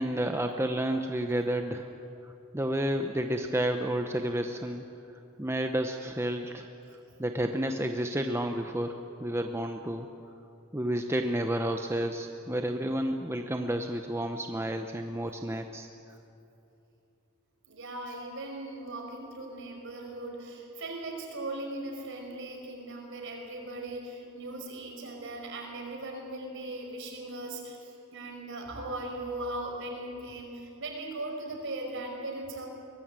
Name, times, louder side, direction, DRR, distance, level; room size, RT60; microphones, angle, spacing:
voice 1, 0.0-1.9 2.2-4.8 5.4-6.7 7.2-10.1 10.7-15.9, right 1 dB, 10° right, 5 dB, 0.8 m, -31 dB
voice 2, 17.7-32.7, right 2 dB, 55° right, 1 dB, 5.3 m, -38 dB
23.0 x 20.0 x 8.9 m, 2.8 s
head